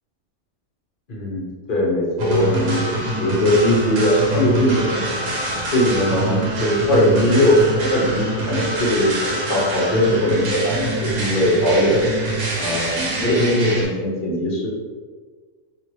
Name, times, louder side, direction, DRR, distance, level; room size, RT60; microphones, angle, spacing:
voice 1, 1.1-5.2 5.5-9.1 9.5-12.0 12.6-14.7, left 1 dB, 45° left, -4 dB, 0.8 m, -20 dB
sound 1, 2.2-13.8, right 2 dB, 75° right, 1.3 m, -25 dB
2.9 x 2.8 x 3.1 m, 1.5 s
omnidirectional pair, 1.6 m